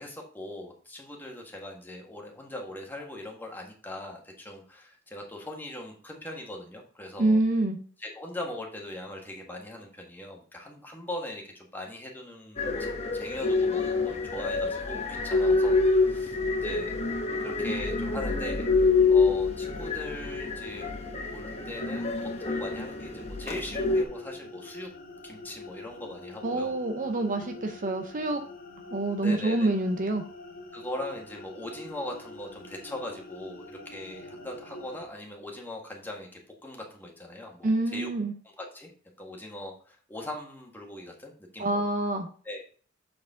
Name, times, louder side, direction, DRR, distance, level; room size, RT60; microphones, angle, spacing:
voice 1, 0.0-7.4 8.0-17.0 17.4-20.9 21.3-24.9 25.2-26.8 29.2-29.7 30.7-38.1 38.4-38.9 39.2-41.8 42.4-42.6, left 1 dB, 10° left, -1 dB, 1.6 m, -40 dB
voice 2, 7.2-7.8 26.4-28.4 28.9-30.2 37.6-38.3 41.6-42.3, right 2 dB, 40° right, 5 dB, 0.7 m, -26 dB
sound 1, 12.6-24.0, left 3 dB, 30° left, 1.0 m, -27 dB
sound 2, 19.3-35.1, left 2 dB, 50° left, 1.5 m, -45 dB
7.4 x 4.8 x 3.7 m, 0.43 s
head